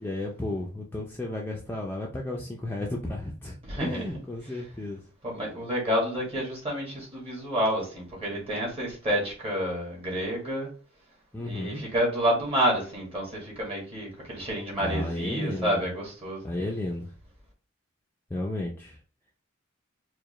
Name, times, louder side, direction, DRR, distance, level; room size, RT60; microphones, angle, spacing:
voice 1, 0.0-5.0 11.3-11.8 14.8-15.9 16.4-17.1 18.3-19.0, left 1 dB, 10° left, 0.4 m, -33 dB
voice 2, 3.6-4.0 5.2-10.7 11.4-16.4, equal, 30° right, 1.7 m, -29 dB
4.7 x 2.2 x 3.1 m
head